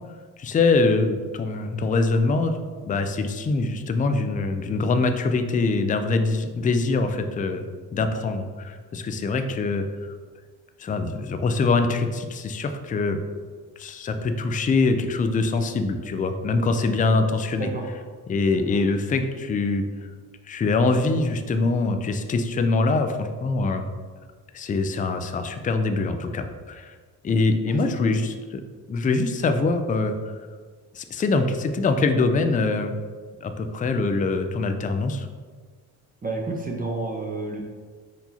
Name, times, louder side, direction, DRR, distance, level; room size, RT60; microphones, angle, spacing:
voice 1, 0.4-2.6 2.8-7.7 7.9-9.9 10.8-13.2 13.8-17.7 18.3-19.9 20.5-23.9 24.5-26.9 27.2-28.6 28.9-30.1 30.9-32.9 33.4-35.3, left 3 dB, 20° left, 7 dB, 0.4 m, -23 dB
voice 2, 36.2-37.6, right 3 dB, 20° right, -1 dB, 0.7 m, -30 dB
4.5 x 2.7 x 4.2 m, 1.5 s
supercardioid pair, 70°, 38 cm